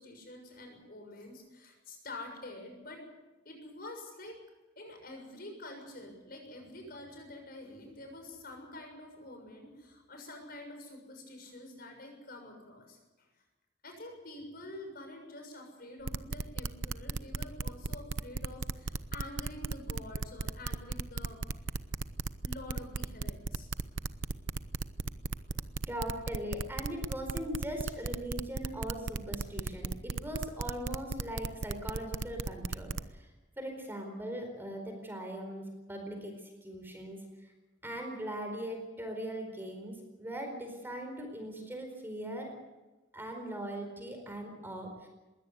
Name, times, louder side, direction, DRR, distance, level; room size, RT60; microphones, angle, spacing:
voice 1, 0.0-3.0 3.4-4.4 4.8-13.3 13.8-21.4 22.4-23.7, left 1 dB, 50° left, 3 dB, 6.8 m, -47 dB
sound 1, 16.1-33.0, right 4 dB, 85° right, 0.8 m, -35 dB
voice 2, 25.9-33.3 33.6-36.3 36.6-37.5 37.8-42.5 43.1-45.1, equal, 10° right, 3 dB, 4.5 m, -40 dB
21.5 x 17.0 x 8.3 m, 1.1 s
head